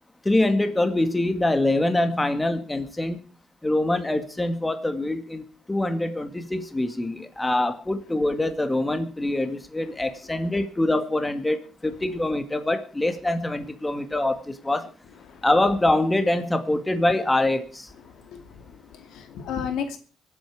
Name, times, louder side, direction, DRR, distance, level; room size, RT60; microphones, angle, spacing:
voice 1, 0.3-3.2 3.6-14.9 15.4-17.9, left 1 dB, 15° left, 8 dB, 2.0 m, -24 dB
voice 2, 18.1-20.0, left 7 dB, 85° left, 7 dB, 2.5 m, -34 dB
24.5 x 8.9 x 4.8 m, 0.38 s
cardioid pair, 90°, 0 cm